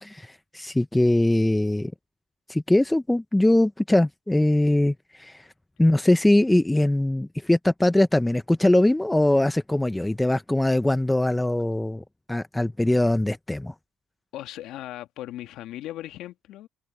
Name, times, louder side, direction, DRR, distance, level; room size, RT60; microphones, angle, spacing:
voice 1, 0.0-1.9 2.5-5.4 5.8-13.7, left 1 dB, 10° left, 1.2 m, -22 dB
voice 2, 14.3-16.7, left 14 dB, 70° left, 2.2 m, -37 dB
supercardioid pair, 65°, 0 cm